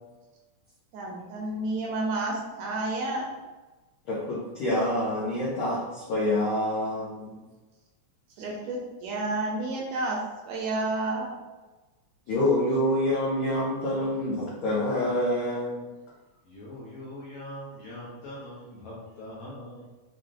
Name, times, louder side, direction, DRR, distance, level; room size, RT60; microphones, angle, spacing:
voice 1, 0.9-3.3 8.4-10.2 10.5-11.3, right 2 dB, 75° right, -2 dB, 1.8 m, -30 dB
voice 2, 4.0-7.4 12.3-15.8, left 1 dB, 80° left, -7 dB, 1.1 m, -27 dB
voice 3, 16.5-19.9, left 1 dB, 65° left, -6 dB, 1.6 m, -42 dB
5.6 x 3.2 x 2.5 m, 1.2 s
omnidirectional pair, 3.5 m